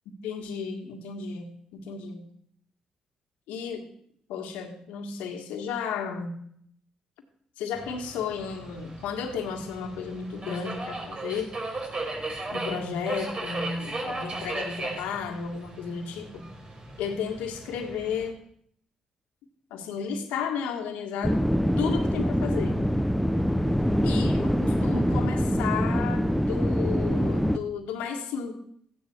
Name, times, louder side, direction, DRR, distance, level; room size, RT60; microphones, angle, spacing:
voice 1, 0.2-2.3 3.5-3.9 4.3-6.4 7.6-11.5 12.5-16.4 17.0-18.4 19.7-21.4 21.8-22.9 24.0-28.6, left 6 dB, 85° left, 5 dB, 1.8 m, -33 dB
Subway metro underground, 7.7-18.3, right 2 dB, 40° right, 4.4 m, -37 dB
sound 1, 21.2-27.6, equal, ahead, 1.0 m, -24 dB
15.0 x 10.0 x 4.7 m, 0.66 s
supercardioid pair, 55°, 2 cm